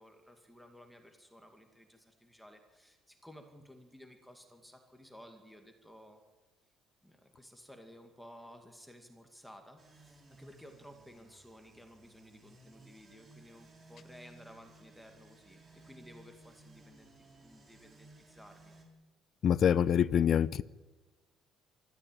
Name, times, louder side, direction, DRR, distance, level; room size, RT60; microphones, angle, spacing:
voice 1, 0.0-6.2 7.0-18.7, equal, ahead, 2.3 m, -55 dB
sound 1, 9.8-18.9, right 2 dB, 25° right, 4.6 m, -59 dB
voice 2, 19.4-20.6, left 9 dB, 45° left, 0.6 m, -25 dB
24.0 x 14.0 x 9.2 m
cardioid pair, 140°, 0 cm